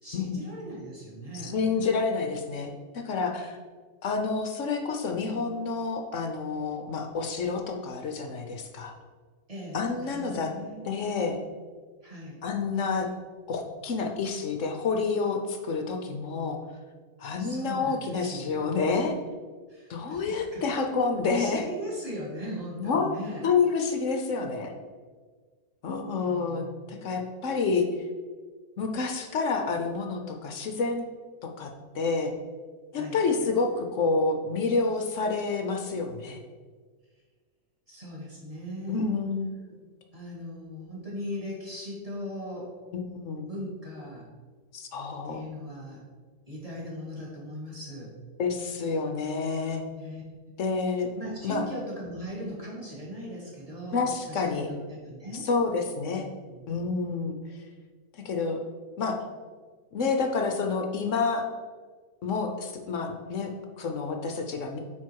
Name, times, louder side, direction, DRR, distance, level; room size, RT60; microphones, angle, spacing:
voice 1, 0.0-1.5 9.5-10.8 12.0-12.4 17.4-18.7 19.7-20.2 20.5-20.6 21.2-23.4 26.3-27.0 32.9-33.2 37.9-39.1 40.1-42.7 43.5-44.2 45.2-46.0 46.5-48.1 49.9-50.2 51.1-55.4 56.5-56.6, equal, 20° right, -5 dB, 2.2 m, -39 dB
voice 2, 1.4-3.6 4.0-8.9 9.7-10.5 10.8-11.4 12.4-13.1 13.5-16.6 17.2-19.1 19.9-21.7 22.8-23.2 23.4-24.7 25.8-27.9 28.8-31.0 31.4-32.3 32.9-36.4 38.9-39.5 42.9-43.5 44.7-45.4 48.4-49.8 50.6-51.1 51.4-51.6 53.9-54.7 55.3-56.3 56.7-57.6 58.1-58.6 59.0-59.2 59.9-61.5 62.2-64.8, left 4 dB, 65° left, 4 dB, 0.8 m, -28 dB
9.2 x 3.8 x 4.6 m, 1.5 s
omnidirectional pair, 2.0 m